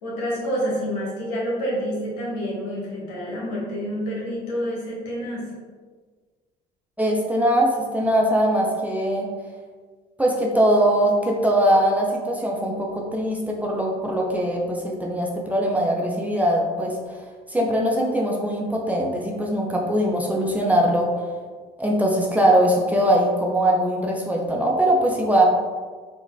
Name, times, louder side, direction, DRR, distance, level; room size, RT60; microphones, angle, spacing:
voice 1, 0.0-5.5, equal, 75° left, -5 dB, 1.1 m, -28 dB
voice 2, 7.0-9.3 10.2-17.2 17.5-21.2 21.8-25.4, right 1 dB, 5° right, -2 dB, 0.6 m, -21 dB
3.7 x 2.1 x 2.6 m, 1.5 s
hypercardioid pair, 65°, 21 cm